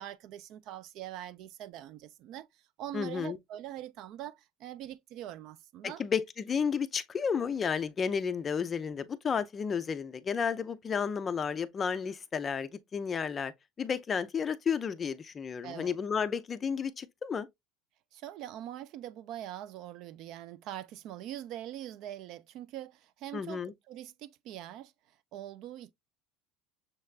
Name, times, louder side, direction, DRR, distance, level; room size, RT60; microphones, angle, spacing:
voice 1, 0.0-6.0 15.6-16.0 18.1-24.9 25.3-25.9, right 12 dB, 50° right, 0.3 m, -43 dB
voice 2, 2.9-3.4 5.8-13.5 13.8-17.5 23.3-23.7, left 6 dB, 20° left, 0.4 m, -32 dB
6.5 x 3.3 x 2.3 m
cardioid pair, 165°, 0 cm